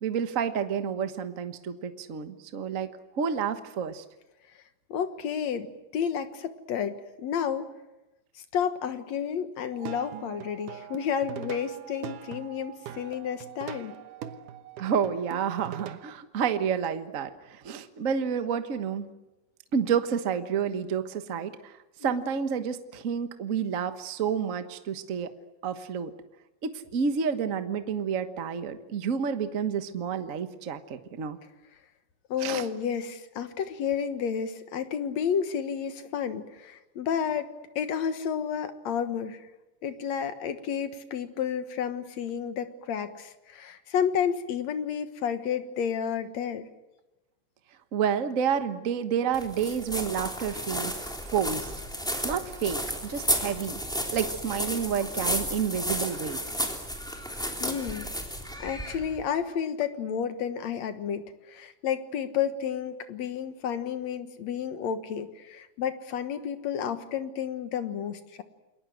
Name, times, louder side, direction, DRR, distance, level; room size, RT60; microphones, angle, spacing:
voice 1, 0.0-2.9 3.2-4.0 14.8-19.1 19.7-21.8 22.0-25.3 25.6-26.1 26.6-31.4 32.4-32.6 47.9-51.7 52.2-53.8 54.1-56.4, right 7 dB, 60° right, 9 dB, 0.8 m, -29 dB
voice 2, 4.9-7.7 8.4-13.9 22.0-22.3 32.3-39.5 39.8-46.7 57.6-58.1 58.6-68.4, left 8 dB, 65° left, 9 dB, 2.5 m, -31 dB
Plucked string instrument, 9.7-16.1, right 10 dB, 85° right, 2.7 m, -42 dB
sound 1, 49.3-59.2, equal, ahead, 3.1 m, -32 dB
29.0 x 21.5 x 7.8 m, 1.0 s
omnidirectional pair, 3.5 m